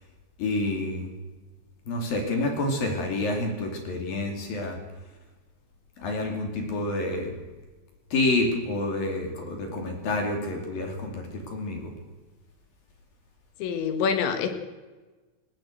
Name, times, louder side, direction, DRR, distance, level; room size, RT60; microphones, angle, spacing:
voice 1, 0.4-1.1 1.9-4.8 6.0-7.3 8.1-11.9, left 2 dB, 50° left, 3 dB, 4.0 m, -28 dB
voice 2, 13.6-14.5, left 6 dB, 70° left, 7 dB, 3.6 m, -26 dB
20.0 x 17.5 x 7.9 m, 1.2 s
omnidirectional pair, 5.9 m